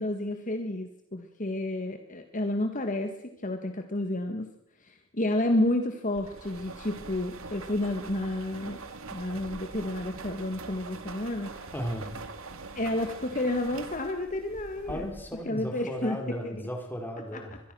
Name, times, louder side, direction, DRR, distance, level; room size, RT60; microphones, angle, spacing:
voice 1, 0.0-3.1 3.4-4.5 4.8-8.8 9.1-11.5 12.8-15.1 15.5-16.2 16.4-16.5 17.3-17.4, left 1 dB, 40° left, 6 dB, 1.8 m, -30 dB
sound 1, 6.2-15.5, right 3 dB, 85° right, 2.4 m, -43 dB
voice 2, 11.7-12.1 14.9-17.6, equal, 10° left, 3 dB, 4.4 m, -35 dB
24.5 x 22.5 x 6.3 m, 0.74 s
head